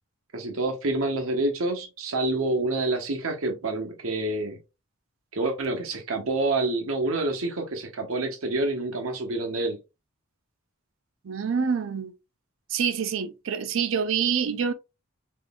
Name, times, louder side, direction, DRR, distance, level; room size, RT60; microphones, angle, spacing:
voice 1, 0.3-4.6 5.3-9.8, right 2 dB, 90° right, 1.0 m, -27 dB
voice 2, 11.2-12.1 12.7-14.7, right 6 dB, 70° right, 0.5 m, -26 dB
3.8 x 3.0 x 2.3 m
head